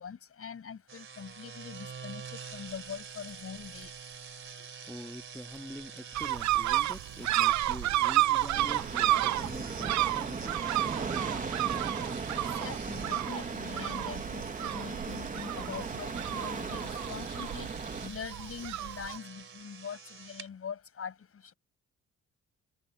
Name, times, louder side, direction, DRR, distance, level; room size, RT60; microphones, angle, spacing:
voice 1, 0.0-2.2 2.5-3.9 12.6-17.7 18.0-21.1, left 7 dB, 50° left, 7.0 m, -43 dB
sound 1, 0.9-20.5, right 6 dB, 40° right, 3.3 m, -47 dB
voice 2, 4.8-10.6, left 1 dB, 5° left, 1.8 m, -45 dB
sound 2, 6.1-19.2, right 15 dB, 65° right, 0.6 m, -31 dB
sound 3, 8.5-18.1, right 4 dB, 25° right, 1.7 m, -37 dB
cardioid pair, 90°, 30 cm